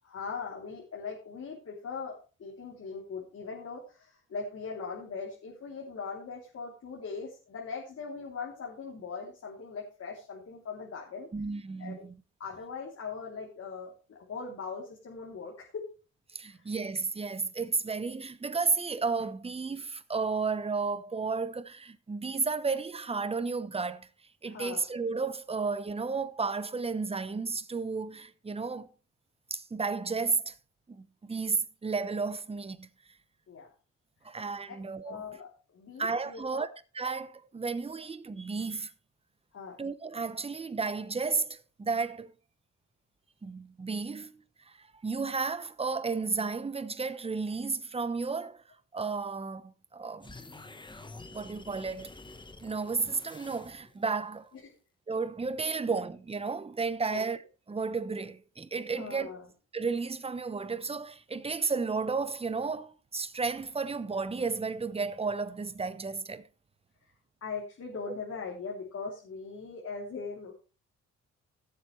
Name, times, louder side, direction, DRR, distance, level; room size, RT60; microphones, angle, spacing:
voice 1, 0.0-11.3 11.8-12.0 12.4-15.8 16.5-16.6 24.4-24.8 33.5-33.7 35.0-36.7 39.5-39.8 54.6-54.7 57.1-57.2 59.0-59.5 67.4-70.5, left 5 dB, 55° left, 3.2 m, -40 dB
voice 2, 11.3-12.1 16.3-24.1 24.4-28.9 29.5-30.6 30.9-32.9 34.2-35.2 36.0-36.7 36.9-38.9 39.8-42.3 43.4-44.3 44.7-48.6 48.9-50.3 51.3-52.1 52.6-54.5 55.1-57.4 57.7-59.3 59.7-66.5, right 4 dB, 20° right, 0.9 m, -33 dB
sound 1, 50.2-54.1, left 3 dB, 15° left, 1.1 m, -48 dB
17.0 x 7.4 x 3.3 m
cardioid pair, 90°, 30 cm